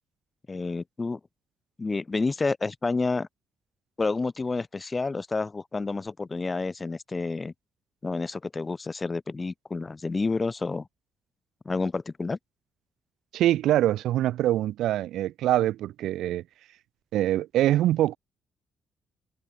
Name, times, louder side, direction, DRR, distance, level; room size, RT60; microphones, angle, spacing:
voice 1, 0.5-1.2 1.8-3.3 4.0-7.5 8.0-10.9 11.7-12.4, left 3 dB, 25° left, 0.3 m, -29 dB
voice 2, 13.3-16.4 17.1-18.2, right 13 dB, 85° right, 0.5 m, -24 dB
cardioid pair, 90°, 0 cm